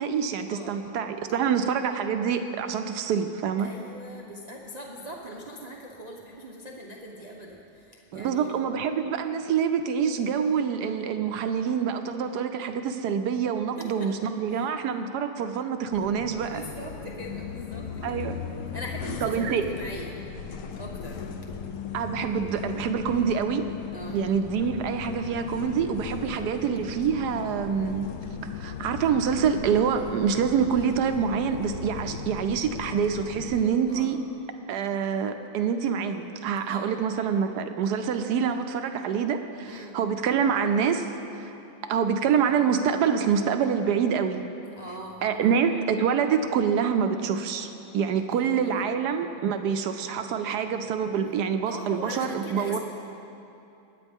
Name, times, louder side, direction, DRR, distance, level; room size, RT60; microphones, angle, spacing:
voice 1, 0.0-3.7 8.1-16.6 18.0-18.4 19.2-19.6 21.9-23.7 24.1-28.1 28.5-34.2 34.7-41.1 41.4-41.5 41.8-44.4 45.2-47.7 47.9-52.8, right 7 dB, 75° right, 8 dB, 1.0 m, -26 dB
voice 2, 3.6-8.6 13.8-14.1 14.5-14.6 16.4-18.2 18.7-20.2 20.8-21.3 23.9-24.2 33.9-34.1 36.7-37.2 39.6-39.9 44.8-45.5 48.3-48.9 51.6-52.8, equal, 50° right, -2 dB, 0.4 m, -41 dB
sound 1, 15.9-33.6, left 7 dB, 85° left, 0.7 m, -37 dB
22.0 x 9.3 x 3.6 m, 2.8 s
omnidirectional pair, 2.2 m